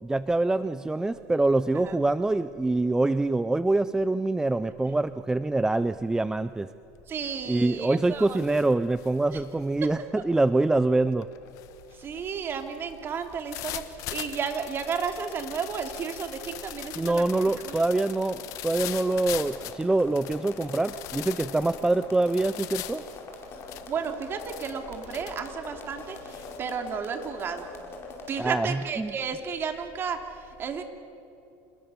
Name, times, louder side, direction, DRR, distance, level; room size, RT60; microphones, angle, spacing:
voice 1, 0.0-6.7 7.5-11.3 17.0-23.1 28.4-29.1, right 2 dB, 10° right, 14 dB, 0.5 m, -25 dB
sound 1, 6.9-7.3 7.7-26.6, left 15 dB, 60° left, 1.3 m, -42 dB
voice 2, 7.1-8.4 9.3-9.4 11.9-13.8 14.1-17.2 17.6-17.9 23.9-27.6 28.3-30.8, right 6 dB, 35° right, 5 dB, 2.8 m, -33 dB
sound 2, 17.2-28.4, left 4 dB, 40° left, 5.0 m, -43 dB
27.5 x 20.5 x 7.0 m, 2.7 s
supercardioid pair, 115°, 6 cm